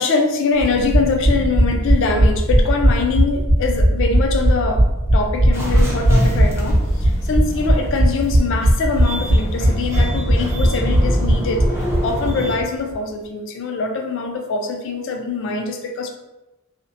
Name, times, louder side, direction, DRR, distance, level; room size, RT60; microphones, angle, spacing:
voice 1, 0.0-11.7 12.0-16.1, left 4 dB, 60° left, 4 dB, 0.3 m, -23 dB
sound 1, 0.6-12.3 12.6-12.7 12.9-13.0, right 1 dB, 80° left, 1.3 m, -17 dB
sound 2, 5.5-12.6, equal, 10° right, 0.4 m, -26 dB
2.8 x 2.0 x 2.5 m, 0.99 s
head